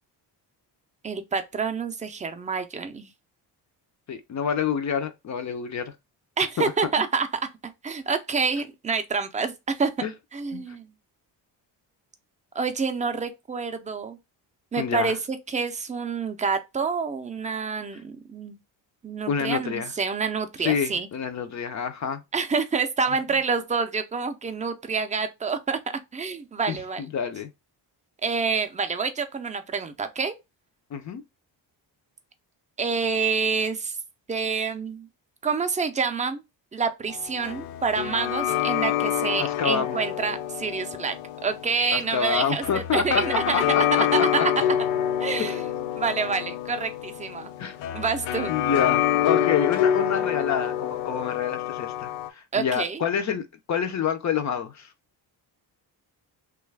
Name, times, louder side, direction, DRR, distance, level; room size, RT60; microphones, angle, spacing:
voice 1, 1.0-3.1 6.4-7.3 7.6-9.5 9.8-9.9 10.3-10.9 12.5-14.2 14.7-18.6 19.0-21.1 22.3-25.8 26.1-27.0 28.2-30.4 32.8-34.0 34.3-35.1 35.4-36.4 36.7-41.1 41.4-43.6 43.9-44.6 45.2-45.7 45.9-47.5 47.9-48.5 52.5-53.0, right 5 dB, 15° right, 0.4 m, -27 dB
voice 2, 4.1-5.9 6.6-6.7 10.0-10.1 10.5-10.6 14.8-15.1 19.3-19.9 20.6-22.2 26.7-27.5 30.9-31.2 39.4-40.0 41.9-43.8 44.4-44.5 45.4-45.6 47.6-47.8 48.5-54.9, left 7 dB, 40° left, 0.4 m, -27 dB
sound 1, 37.1-52.3, left 11 dB, 85° left, 0.6 m, -27 dB
3.0 x 2.3 x 3.2 m
cardioid pair, 110°, 44 cm